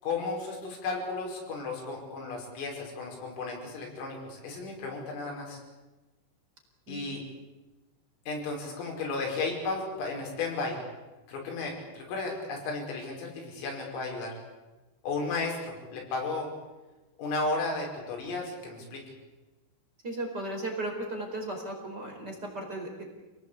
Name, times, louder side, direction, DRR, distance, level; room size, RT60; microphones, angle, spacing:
voice 1, 0.0-5.6 6.9-7.2 8.3-10.8 11.3-14.4 15.0-16.5 17.2-19.0, left 3 dB, 80° left, 0 dB, 8.2 m, -34 dB
voice 2, 20.0-23.0, right 1 dB, 20° right, 2 dB, 4.6 m, -36 dB
29.0 x 19.0 x 8.5 m, 1.1 s
omnidirectional pair, 5.9 m